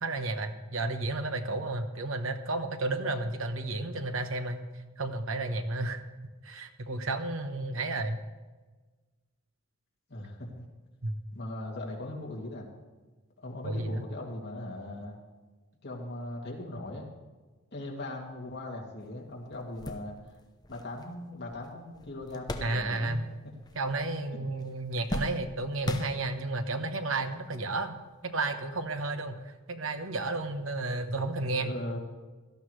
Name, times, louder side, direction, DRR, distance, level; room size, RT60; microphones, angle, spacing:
voice 1, 0.0-4.7 5.0-6.0 6.4-8.2 11.0-11.1 13.6-14.0 22.6-23.2 23.7-28.0 28.2-31.7, right 2 dB, 90° right, 7 dB, 1.1 m, -32 dB
voice 2, 10.1-10.7 11.3-12.7 13.4-15.2 15.8-17.1 17.7-20.3 20.7-23.2 31.6-32.0, left 1 dB, 60° left, -2 dB, 2.6 m, -39 dB
sound 1, 19.0-19.1 19.5-23.3 23.6-24.3 24.6-26.6 27.4-27.5 28.8-29.0, left 1 dB, 20° left, 0.7 m, -38 dB
17.0 x 13.0 x 3.3 m, 1.3 s
head